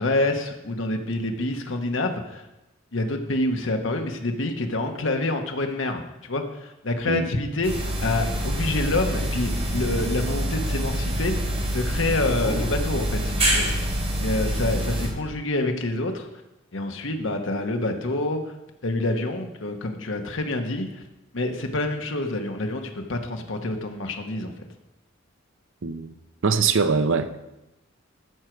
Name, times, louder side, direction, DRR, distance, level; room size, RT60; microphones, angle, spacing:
voice 1, 0.0-2.4 2.9-13.7 14.2-16.3 16.7-18.5 18.8-21.0 21.3-24.5, left 2 dB, 70° left, 4 dB, 1.1 m, -27 dB
sound 1, 7.6-15.1, equal, 30° right, 3.8 m, -26 dB
voice 2, 25.8-26.1 26.4-27.4, right 5 dB, 75° right, 11 dB, 0.7 m, -22 dB
14.0 x 6.2 x 4.6 m, 0.95 s
head